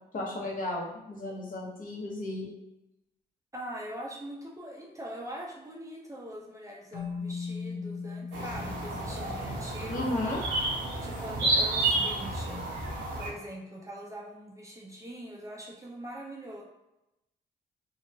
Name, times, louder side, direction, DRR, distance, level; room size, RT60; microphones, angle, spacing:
voice 1, 0.1-2.5 9.9-10.4, left 2 dB, 45° left, -3 dB, 0.9 m, -34 dB
voice 2, 3.5-10.4 11.0-12.7 13.2-16.6, equal, 15° right, -1 dB, 0.6 m, -42 dB
Keyboard (musical), 6.9-10.2, left 5 dB, 75° left, 0.7 m, -39 dB
sound 1, 8.3-13.3, right 2 dB, 85° right, 0.7 m, -30 dB
2.9 x 2.1 x 2.7 m, 0.92 s
supercardioid pair, 60°, 19 cm